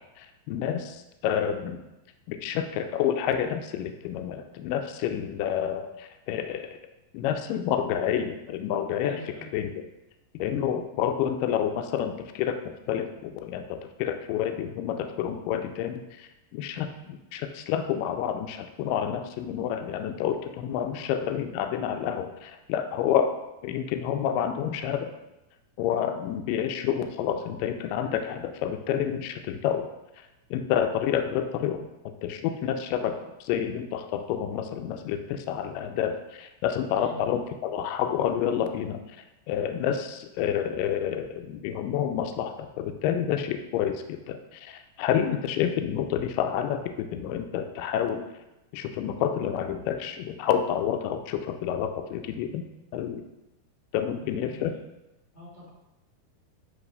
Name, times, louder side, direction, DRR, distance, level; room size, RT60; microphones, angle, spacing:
voice 1, 0.2-1.8 2.3-6.8 7.1-9.2 9.5-9.7 10.3-12.6 12.9-23.3 23.6-25.1 25.8-29.8 30.5-33.1 33.5-39.0 39.5-48.2 48.7-52.6 52.9-53.2 53.9-54.8, left 9 dB, 90° left, 6 dB, 1.9 m, -29 dB
voice 2, 9.0-9.5 20.9-21.0 33.0-33.1 37.0-37.2 54.0-54.8 55.3-55.7, left 1 dB, 40° left, -8 dB, 0.9 m, -46 dB
8.1 x 3.0 x 5.4 m, 0.96 s
omnidirectional pair, 4.5 m